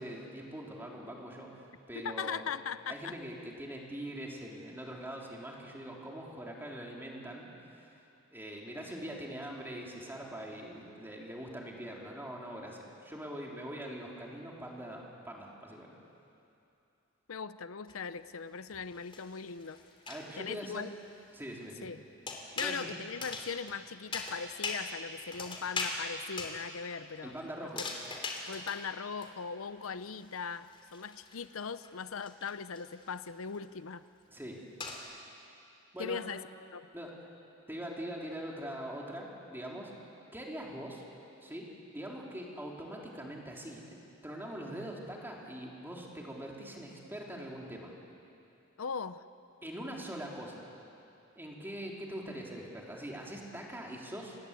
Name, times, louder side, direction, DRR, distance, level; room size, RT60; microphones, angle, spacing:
voice 1, 0.0-2.4 2.9-7.5 7.7-7.9 8.3-16.0 20.1-20.9 21.3-21.9 22.6-22.9 27.2-27.8 34.3-34.6 35.9-36.2 36.9-37.1 37.7-39.9 40.3-41.0 41.4-47.9 49.6-50.7 51.4-54.4, right 1 dB, 10° right, -2 dB, 3.6 m, -43 dB
voice 2, 2.0-3.1 17.3-19.8 20.4-20.9 21.8-22.0 22.6-27.3 28.5-34.0 36.0-36.4 36.7-36.9 48.8-49.2, left 6 dB, 90° left, 13 dB, 0.7 m, -39 dB
sound 1, 17.9-18.0 18.7-20.3 22.3-22.8 23.2-23.8 24.1-24.8 25.3-26.0 26.4-26.6 27.7-28.8 29.2-29.3 29.6-29.7 30.2-33.2 33.5-33.6 34.3-34.4 34.8-35.0, left 4 dB, 25° left, 3.0 m, -40 dB
27.5 x 20.0 x 8.4 m, 2.7 s
head